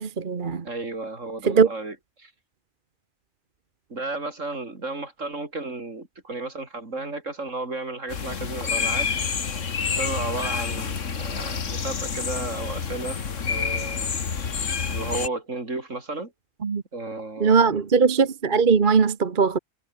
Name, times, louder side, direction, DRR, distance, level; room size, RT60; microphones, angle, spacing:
voice 1, 0.0-0.6 1.5-1.7 16.6-16.8 17.4-19.6, right 5 dB, 40° right, 1.2 m, -20 dB
voice 2, 0.6-2.3 3.9-9.1 10.0-13.2 13.5-14.2 14.9-16.3 16.9-17.8, right 2 dB, 70° right, 4.5 m, -33 dB
sound 1, 8.1-15.3, left 6 dB, 70° left, 2.0 m, -28 dB
omnidirectional pair, 1.4 m